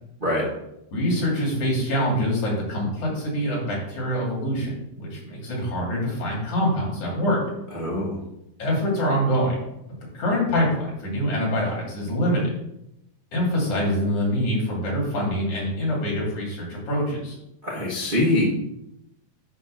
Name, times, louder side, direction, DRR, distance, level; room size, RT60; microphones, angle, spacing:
voice 1, 0.9-4.7 5.0-7.4 8.6-9.6 10.1-12.5 13.3-17.4, equal, 60° left, -3 dB, 4.2 m, -25 dB
voice 2, 7.7-8.2 17.6-18.4, left 1 dB, 25° right, -5 dB, 1.2 m, -23 dB
9.8 x 3.4 x 7.0 m, 0.83 s
omnidirectional pair, 3.8 m